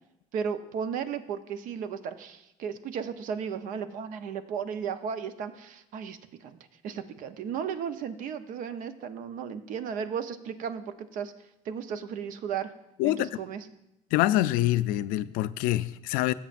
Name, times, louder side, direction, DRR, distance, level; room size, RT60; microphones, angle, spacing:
voice 1, 0.3-6.6 6.8-11.3 11.6-12.7 13.0-13.7, right 7 dB, 65° right, 10 dB, 0.8 m, -35 dB
voice 2, 13.0-13.3 14.1-16.3, left 15 dB, 70° left, 15 dB, 0.4 m, -25 dB
16.0 x 7.3 x 2.5 m, 0.86 s
supercardioid pair, 80°, 15 cm